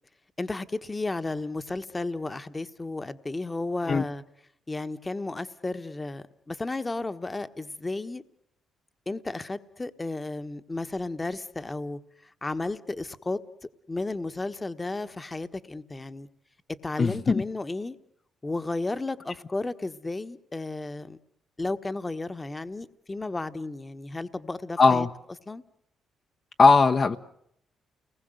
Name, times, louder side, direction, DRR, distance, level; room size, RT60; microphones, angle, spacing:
voice 1, 0.4-4.2 4.7-8.2 9.1-12.0 12.4-13.4 13.9-16.3 16.8-18.0 18.4-21.2 21.6-25.1 25.5-25.6, left 2 dB, 20° left, 1.2 m, -33 dB
voice 2, 17.0-17.4 24.8-25.1 26.6-27.2, left 4 dB, 40° left, 1.0 m, -19 dB
29.5 x 20.0 x 7.9 m
cardioid pair, 90°, 0 cm